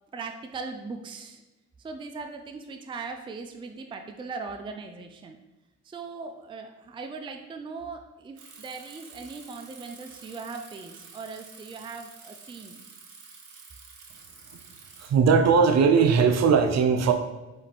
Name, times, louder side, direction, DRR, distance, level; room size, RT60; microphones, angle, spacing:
voice 1, 0.1-1.4 1.8-5.4 5.8-12.8, right 4 dB, 15° right, 5 dB, 0.4 m, -39 dB
Bicycle, 8.4-15.1, right 5 dB, 80° right, 1.0 m, -49 dB
voice 2, 15.0-17.1, right 5 dB, 60° right, 6 dB, 0.6 m, -19 dB
4.2 x 3.1 x 4.1 m, 1.1 s
cardioid pair, 90°, 30 cm